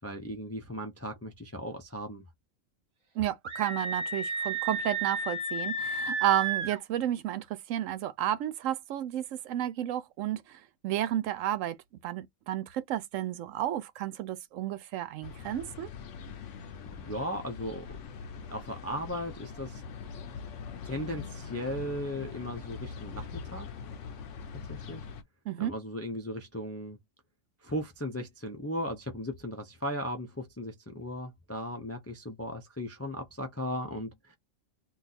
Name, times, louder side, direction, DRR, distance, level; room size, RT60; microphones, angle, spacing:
voice 1, 0.0-2.2 17.0-17.8 18.5-19.8 20.8-23.7 24.7-25.0 25.6-27.0 27.6-34.4, equal, 25° left, 0.3 m, -37 dB
voice 2, 3.2-11.8 12.0-15.9 25.5-25.7, right 12 dB, 80° right, 0.9 m, -32 dB
Screaming, 3.4-6.8, right 3 dB, 35° right, 0.5 m, -32 dB
sound 1, 15.2-25.2, left 5 dB, 75° left, 0.9 m, -42 dB
2.6 x 2.4 x 4.0 m
omnidirectional pair, 1.3 m